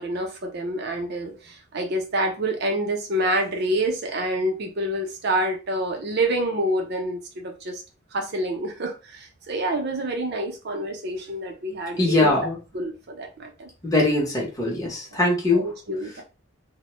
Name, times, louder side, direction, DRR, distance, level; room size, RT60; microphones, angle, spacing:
voice 1, 0.0-7.8 8.1-12.3 12.7-13.7 15.5-16.2, right 1 dB, 50° right, 3 dB, 0.5 m, -27 dB
voice 2, 12.0-12.6 13.8-15.7, left 2 dB, 15° left, -3 dB, 0.7 m, -21 dB
2.1 x 2.0 x 2.9 m, 0.33 s
head